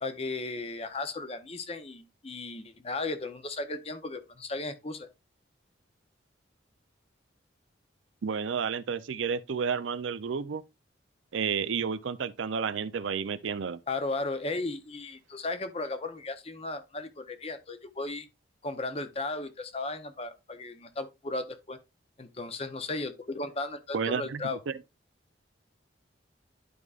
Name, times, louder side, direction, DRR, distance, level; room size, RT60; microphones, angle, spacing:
voice 1, 0.0-5.1 13.9-18.3 18.6-21.8 22.2-24.6, left 2 dB, 30° left, 0.7 m, -35 dB
voice 2, 8.2-10.6 11.3-13.8 23.9-24.8, right 6 dB, 85° right, 0.5 m, -31 dB
11.0 x 4.8 x 2.4 m
head